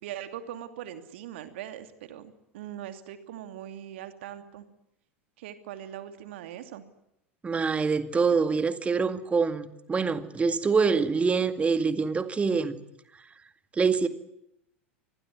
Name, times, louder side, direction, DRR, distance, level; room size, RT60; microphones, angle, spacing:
voice 1, 0.0-4.6 5.4-6.8, right 11 dB, 60° right, 2.6 m, -41 dB
voice 2, 7.4-12.8 13.8-14.1, right 5 dB, 20° right, 2.0 m, -25 dB
26.0 x 20.5 x 9.5 m
figure-of-eight pair, 85°, 7 cm